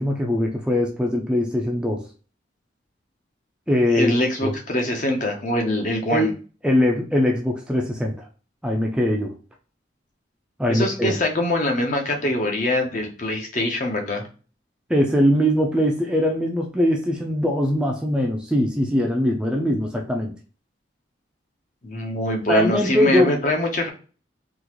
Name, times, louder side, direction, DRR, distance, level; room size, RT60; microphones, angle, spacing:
voice 1, 0.0-2.0 3.7-4.2 4.4-4.6 6.1-6.3 6.6-8.3 8.6-9.3 10.6-11.2 14.9-20.3 22.5-23.3, equal, 5° right, 0 dB, 0.4 m, -21 dB
voice 2, 3.9-6.3 10.7-14.3 21.8-23.9, left 1 dB, 45° left, 2 dB, 0.8 m, -23 dB
3.7 x 2.5 x 3.0 m, 0.37 s
head